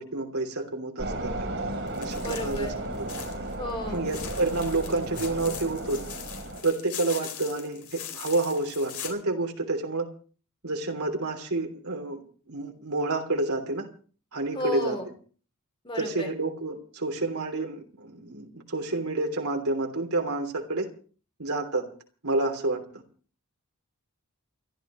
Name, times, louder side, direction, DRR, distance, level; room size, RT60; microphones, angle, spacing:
voice 1, 0.0-1.5 2.0-2.7 3.0-3.1 3.9-6.0 6.6-10.1 10.6-13.9 14.3-15.0 15.9-20.9 21.4-21.8 22.2-22.8, right 2 dB, 80° right, 4 dB, 3.1 m, -29 dB
sound 1, 1.0-6.6, right 1 dB, 55° right, 3.7 m, -34 dB
sound 2, 1.9-3.5 3.9-9.1, left 9 dB, 85° left, 4.0 m, -41 dB
voice 2, 2.2-2.8 3.6-4.1 14.5-15.1 15.8-16.3, left 1 dB, 25° left, 4 dB, 3.0 m, -33 dB
28.5 x 12.5 x 3.1 m, 0.41 s
head